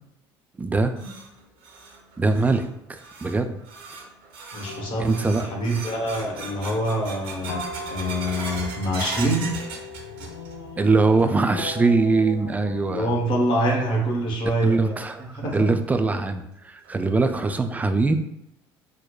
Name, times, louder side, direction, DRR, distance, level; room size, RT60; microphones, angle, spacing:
voice 1, 0.6-0.9 2.2-3.6 5.0-5.5 10.8-13.1 14.6-15.2 15.5-18.1, right 3 dB, 10° right, 7 dB, 0.3 m, -22 dB
sound 1, 0.6-10.7 11.0-11.6 12.0-12.1 12.8-12.9 14.5-14.6 15.1-15.2 15.7-15.8 16.2-16.3 16.8-17.2, right 4 dB, 60° right, 0.8 m, -39 dB
voice 2, 4.5-9.5 12.9-15.7, right 1 dB, 40° left, -1 dB, 1.2 m, -26 dB
sound 2, 4.7-14.3, left 3 dB, 70° left, 0.5 m, -39 dB
6.1 x 2.1 x 2.2 m, 0.80 s
figure-of-eight pair, 60°, 13 cm